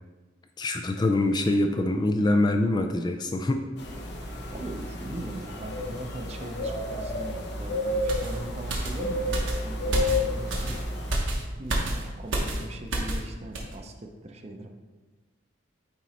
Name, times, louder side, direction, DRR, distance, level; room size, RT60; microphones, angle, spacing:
voice 1, 0.6-3.6, left 2 dB, 20° left, 5 dB, 0.3 m, -24 dB
sound 1, 3.8-11.2, left 1 dB, 60° left, 0.9 m, -31 dB
voice 2, 4.5-10.9 11.6-14.7, right 1 dB, 35° right, 4 dB, 0.6 m, -40 dB
sound 2, 8.1-13.3 13.5-13.7, right 1 dB, 80° right, 1.1 m, -30 dB
8.8 x 3.0 x 4.2 m, 1.3 s
head